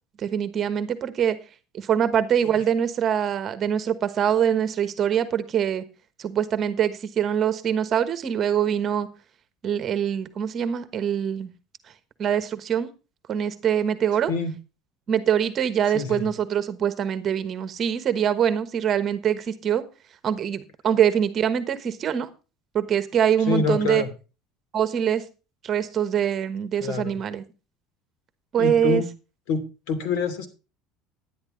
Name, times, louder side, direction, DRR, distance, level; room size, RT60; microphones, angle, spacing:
voice 1, 0.2-1.4 1.7-5.8 6.2-9.1 9.6-11.5 12.2-12.9 13.3-14.3 15.1-19.8 20.2-22.3 22.7-24.0 24.7-25.2 25.6-27.4 28.5-29.0, right 9 dB, 35° right, 12 dB, 1.2 m, -24 dB
voice 2, 15.9-16.3 23.5-24.1 26.8-27.2 28.6-29.1 29.5-30.5, left 4 dB, 75° left, 7 dB, 2.8 m, -26 dB
10.5 x 10.5 x 3.8 m, 0.31 s
cardioid pair, 135°, 0 cm